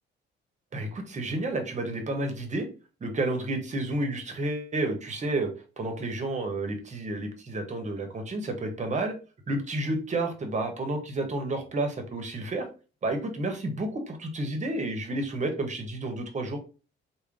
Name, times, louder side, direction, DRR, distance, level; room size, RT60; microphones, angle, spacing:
voice 1, 0.7-2.7 3.0-9.2 9.5-12.7 13.0-16.6, right 2 dB, 35° right, 5 dB, 0.9 m, -31 dB
3.6 x 2.2 x 3.4 m, 0.34 s
cardioid pair, 90°, 20 cm